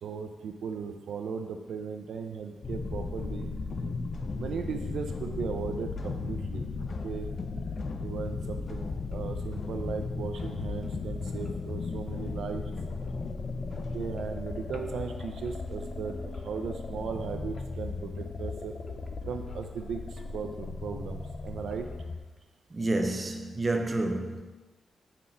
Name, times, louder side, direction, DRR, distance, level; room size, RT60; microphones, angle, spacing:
voice 1, 0.0-3.5 4.4-6.7 7.0-7.3 8.0-12.7 13.9-18.7 19.2-21.9, right 6 dB, 80° right, 0.4 m, -37 dB
sound 1, 2.6-22.2, left 4 dB, 45° left, 0.4 m, -36 dB
voice 2, 22.7-24.4, right 2 dB, 25° right, 0.6 m, -29 dB
5.8 x 3.8 x 4.3 m
cardioid pair, 95°, 0 cm